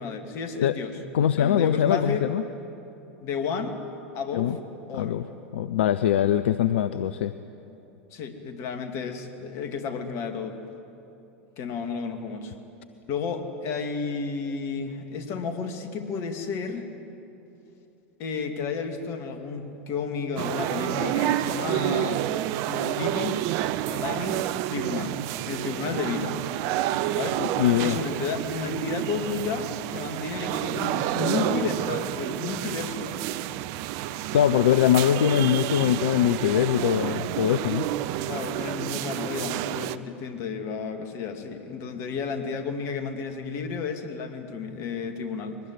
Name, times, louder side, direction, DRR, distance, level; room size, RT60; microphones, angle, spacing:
voice 1, 0.0-2.3 3.2-3.8 4.1-4.5 4.9-5.2 8.1-10.6 11.6-12.5 13.1-16.9 18.2-22.3 22.6-23.5 23.9-25.2 25.5-26.4 27.2-27.4 27.8-33.2 38.2-45.6, left 5 dB, 45° left, 6 dB, 2.5 m, -32 dB
voice 2, 1.1-2.4 4.3-4.6 4.9-5.2 5.5-7.3 27.4-28.0 34.3-37.9, left 10 dB, 70° left, 13 dB, 0.6 m, -22 dB
sound 1, 20.4-40.0, right 13 dB, 50° right, 0.7 m, -29 dB
23.0 x 19.5 x 9.5 m, 2.9 s
figure-of-eight pair, 85°, 6 cm